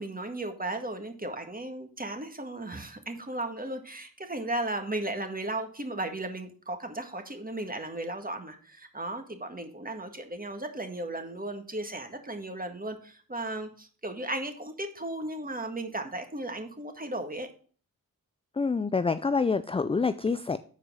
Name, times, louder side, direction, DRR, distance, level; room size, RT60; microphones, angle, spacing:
voice 1, 0.0-17.5, right 1 dB, 25° right, 5 dB, 1.7 m, -35 dB
voice 2, 18.6-20.6, left 4 dB, 15° left, 13 dB, 0.4 m, -27 dB
7.3 x 4.6 x 6.1 m, 0.43 s
cardioid pair, 55°, 37 cm